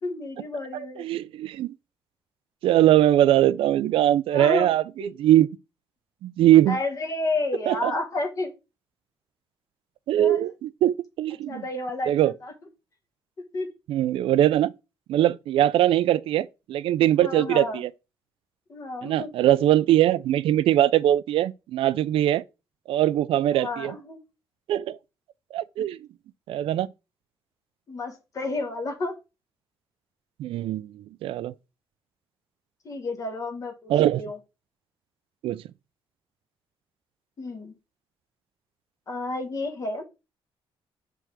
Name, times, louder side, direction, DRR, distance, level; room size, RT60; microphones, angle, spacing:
voice 1, 0.0-1.1 4.3-4.7 5.0-5.1 6.7-8.5 10.2-10.4 11.5-12.5 13.4-13.7 17.1-17.8 18.7-19.3 23.5-24.2 27.9-29.1 32.8-34.4 37.4-37.7 39.1-40.0, left 2 dB, 35° left, 1.3 m, -31 dB
voice 2, 0.7-1.7 2.6-5.5 6.2-6.8 7.7-7.9 10.1-11.6 12.1-12.3 13.9-14.7 15.1-17.9 19.0-22.4 22.9-23.9 24.7-25.0 25.5-26.0 26.5-26.9 30.4-31.5 33.9-34.2 35.4-35.6, right 12 dB, 75° right, 0.4 m, -21 dB
6.1 x 3.4 x 5.8 m
cardioid pair, 180°, 9 cm